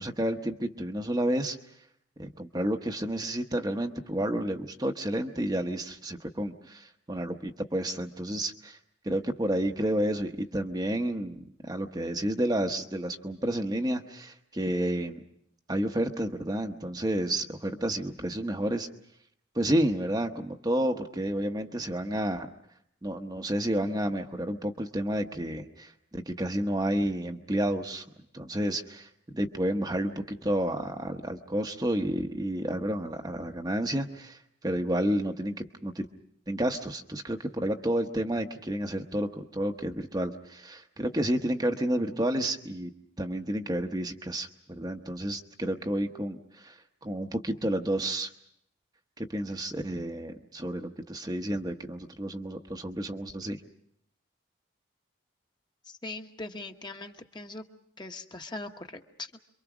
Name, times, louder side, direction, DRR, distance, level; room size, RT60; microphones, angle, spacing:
voice 1, 0.0-1.6 2.2-8.8 9.0-15.2 15.7-18.9 19.5-22.5 23.0-28.0 28.3-35.5 35.8-36.1 36.5-42.9 43.2-48.3 49.2-53.6, right 1 dB, 20° right, 4 dB, 0.9 m, -30 dB
voice 2, 55.9-57.6 58.0-59.4, left 2 dB, 20° left, 4 dB, 1.1 m, -41 dB
27.0 x 24.0 x 6.1 m, 0.72 s
head